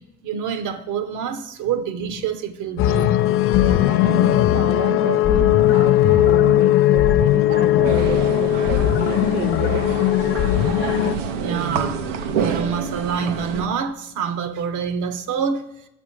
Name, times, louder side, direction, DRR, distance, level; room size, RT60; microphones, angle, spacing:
voice 1, 0.2-3.2 11.4-15.6, right 6 dB, 55° right, 0.9 m, -26 dB
sound 1, 2.8-11.1, left 13 dB, 40° left, 0.4 m, -18 dB
voice 2, 3.5-10.1, right 7 dB, 30° right, 0.5 m, -30 dB
sound 2, 7.8-13.7, right 6 dB, 85° right, 0.7 m, -27 dB
6.2 x 5.0 x 4.6 m
hypercardioid pair, 70°, 36 cm